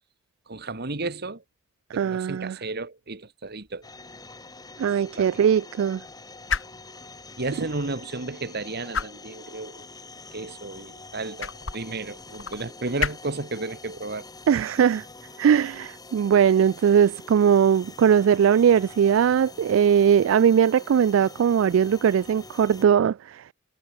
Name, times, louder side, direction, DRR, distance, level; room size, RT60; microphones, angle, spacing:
voice 1, 0.5-1.4 1.9-3.8 5.2-5.3 7.4-9.9 10.3-14.3, right 3 dB, 55° right, 1.9 m, -33 dB
voice 2, 1.9-2.6 4.8-6.0 14.5-15.0 15.4-23.4, right 8 dB, 70° right, 0.3 m, -20 dB
sound 1, 3.5-17.0, left 6 dB, 70° left, 2.2 m, -38 dB
sound 2, 3.8-22.8, left 3 dB, 20° left, 5.2 m, -45 dB
head